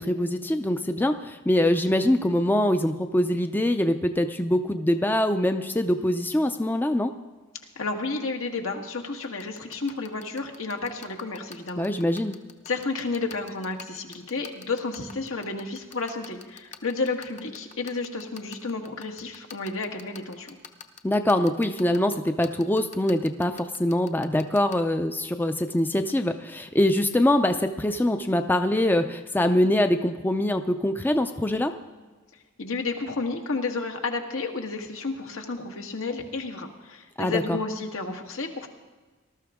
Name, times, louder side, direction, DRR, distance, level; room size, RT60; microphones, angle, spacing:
voice 1, 0.0-7.1 11.8-12.4 21.0-31.7 37.2-37.6, left 1 dB, 10° left, 7 dB, 0.5 m, -24 dB
voice 2, 7.7-11.9 12.7-20.5 32.6-38.7, left 3 dB, 80° left, 3 dB, 1.6 m, -31 dB
sound 1, 9.2-24.8, left 6 dB, 35° left, 0.8 m, -43 dB
19.5 x 13.0 x 3.6 m, 1.3 s
head